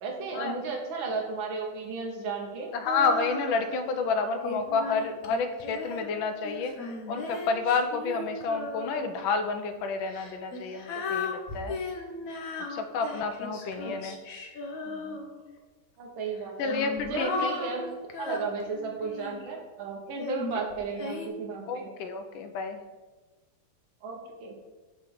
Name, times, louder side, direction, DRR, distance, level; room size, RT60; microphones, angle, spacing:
voice 1, 0.0-2.7 13.8-13.9 16.0-16.7 17.1-17.9 18.2-21.9 24.0-24.5, right 4 dB, 75° right, 0 dB, 1.9 m, -34 dB
voice 2, 2.7-6.7 7.1-11.8 12.7-14.2 14.9-15.2 16.6-17.5 18.2-18.4 21.7-22.8, left 4 dB, 80° left, 7 dB, 1.4 m, -30 dB
Female singing, 2.8-3.9 4.4-9.2 10.0-15.6 16.3-19.5 20.2-21.3, left 3 dB, 60° left, 0.9 m, -37 dB
7.0 x 3.2 x 6.1 m, 1.2 s
omnidirectional pair, 2.2 m